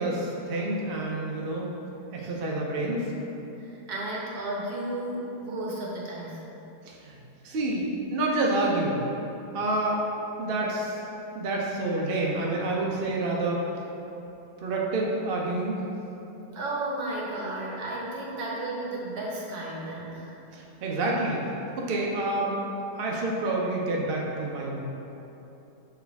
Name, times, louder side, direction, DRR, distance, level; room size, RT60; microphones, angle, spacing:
voice 1, 0.0-1.7 2.1-3.1 6.9-7.2 7.4-9.0 9.5-10.0 10.4-11.0 11.3-13.6 14.6-15.8 20.5-21.4 21.8-22.5 23.0-24.8, right 2 dB, 50° right, -3 dB, 0.7 m, -28 dB
voice 2, 3.6-6.4 16.5-20.3, right 2 dB, 65° right, -4 dB, 1.5 m, -33 dB
6.5 x 4.6 x 3.4 m, 3.0 s
omnidirectional pair, 1.8 m